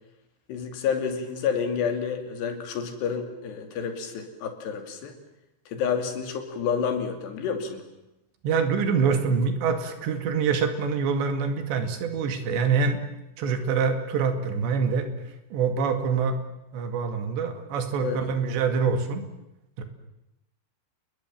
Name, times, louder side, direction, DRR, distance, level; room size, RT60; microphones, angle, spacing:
voice 1, 0.5-5.1 5.7-7.8 18.0-18.3, left 6 dB, 75° left, 5 dB, 4.8 m, -29 dB
voice 2, 8.4-13.0 13.4-15.1 15.5-16.4 16.7-19.2 19.8-19.9, right 5 dB, 90° right, 7 dB, 4.4 m, -25 dB
29.0 x 21.5 x 7.5 m, 0.87 s
omnidirectional pair, 4.9 m